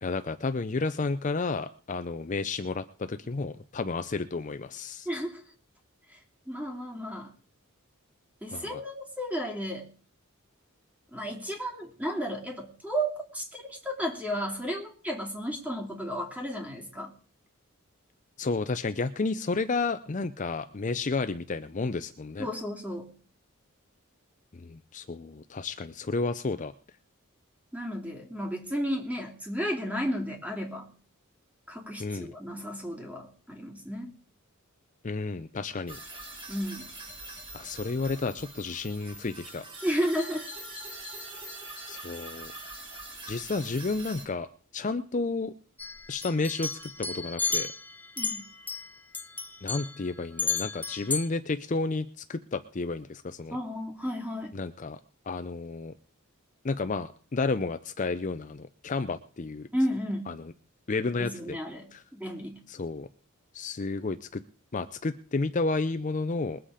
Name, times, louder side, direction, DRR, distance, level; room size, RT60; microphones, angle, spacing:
voice 1, 0.0-5.1 8.5-8.8 18.4-22.5 24.5-26.7 32.0-32.3 35.0-36.0 37.5-39.6 41.9-42.5 43.3-44.5 44.7-45.5 46.1-47.7 49.6-53.6 54.5-55.0 55.3-55.9 56.6-59.7 60.3-60.5 60.9-61.6 61.9-62.0 62.7-63.1 63.5-64.4 64.7-66.6, left 3 dB, 35° left, 10 dB, 0.5 m, -31 dB
voice 2, 5.0-5.4 6.1-6.2 6.5-7.3 8.4-9.9 11.1-17.1 22.4-23.1 27.7-30.9 31.7-34.1 36.5-36.9 39.8-40.5 48.2-48.5 53.5-54.6 59.7-60.4 61.2-62.6, equal, 5° right, 2 dB, 2.7 m, -33 dB
sound 1, 35.9-44.2, right 1 dB, 25° right, 3.0 m, -43 dB
sound 2, 45.8-48.9 49.1-50.0 50.4-51.3, left 5 dB, 10° left, 1.0 m, -33 dB
21.0 x 7.8 x 5.0 m, 0.42 s
head